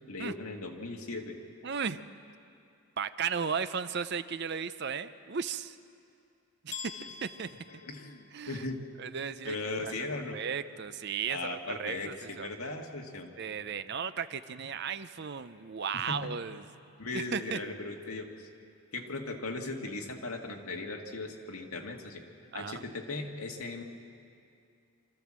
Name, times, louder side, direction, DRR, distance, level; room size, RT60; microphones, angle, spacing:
voice 1, 0.1-1.4 6.9-7.1 7.7-8.8 9.4-10.4 11.3-13.3 15.9-16.2 17.0-18.5 18.9-22.2 22.5-23.8, left 2 dB, 80° left, 2 dB, 1.9 m, -38 dB
voice 2, 1.6-2.0 3.0-5.8 6.6-7.5 8.3-8.7 9.0-9.6 9.8-9.9 10.3-12.5 13.4-16.6 17.1-17.6 22.5-22.8, right 6 dB, 50° right, 12 dB, 0.6 m, -35 dB
sound 1, 6.7-8.7, left 6 dB, 35° left, 0.9 m, -45 dB
25.0 x 14.0 x 7.5 m, 2.5 s
head